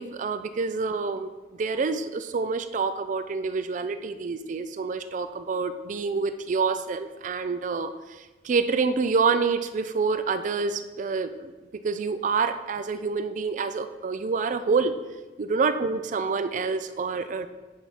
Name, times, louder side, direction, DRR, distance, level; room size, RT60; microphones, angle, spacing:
voice 1, 0.0-14.9 15.4-17.5, right 4 dB, 45° right, 10 dB, 0.4 m, -27 dB
8.5 x 3.4 x 5.6 m, 1.2 s
head